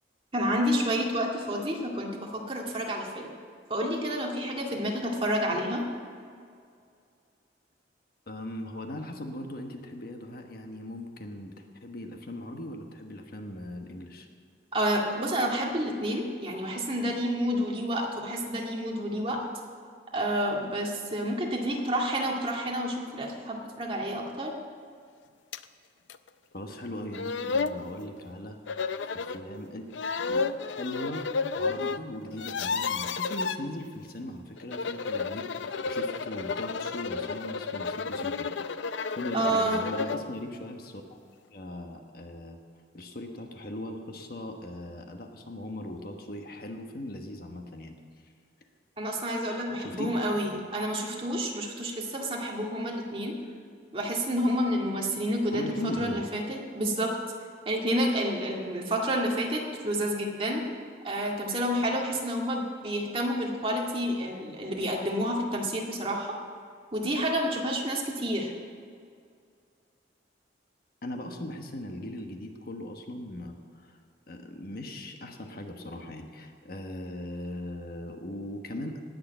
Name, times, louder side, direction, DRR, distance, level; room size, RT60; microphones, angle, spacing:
voice 1, 0.3-3.4 3.7-5.9 14.7-19.4 20.1-24.6 39.3-39.8 49.0-53.4 53.9-55.6 56.0-57.1 57.7-60.7 61.0-66.4 66.9-68.5, equal, 30° right, -1 dB, 2.0 m, -29 dB
voice 2, 8.3-11.5 11.8-14.3 26.5-29.9 30.3-31.3 31.5-38.5 39.1-41.2 41.5-42.6 42.9-48.0 49.8-50.1 55.5-56.2 71.0-74.0 74.3-79.0, left 1 dB, 55° left, 4 dB, 1.2 m, -39 dB
sound 1, 25.5-25.6 26.1-26.2 26.8-26.9 27.1-27.8 28.7-29.4 29.9-32.0 32.3-33.6 34.6-40.3, left 4 dB, 85° left, 0.5 m, -31 dB
18.5 x 6.7 x 7.9 m, 2.2 s
head